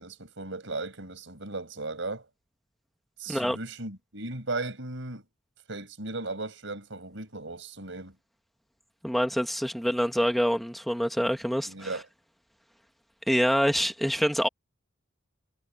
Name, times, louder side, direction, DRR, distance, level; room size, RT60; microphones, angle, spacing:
voice 1, 0.0-2.3 3.2-5.2 5.7-8.1 11.6-12.1, right 2 dB, 70° right, 7.2 m, -36 dB
voice 2, 9.0-11.7 13.3-14.5, equal, ahead, 2.1 m, -26 dB
head